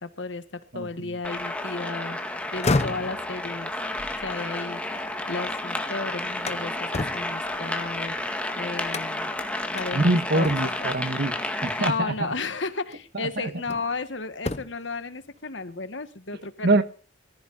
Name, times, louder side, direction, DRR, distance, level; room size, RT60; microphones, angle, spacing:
voice 1, 0.0-2.2 2.5-3.7 4.2-9.3 9.7-10.5 10.8-10.9 11.8-16.8, left 3 dB, 65° left, 1.6 m, -34 dB
voice 2, 0.7-1.2 9.9-11.3 11.6-12.3 13.2-13.3 16.6-16.8, right 2 dB, 60° right, 1.5 m, -24 dB
sound 1, 1.2-11.9, left 1 dB, 5° left, 1.9 m, -31 dB
sound 2, 2.4-5.6 6.0-8.3 8.9-9.4 9.8-9.9 10.4-10.9 12.2-12.3 12.9-14.0 14.3-14.9, left 2 dB, 35° left, 0.9 m, -32 dB
23.0 x 14.5 x 2.6 m
head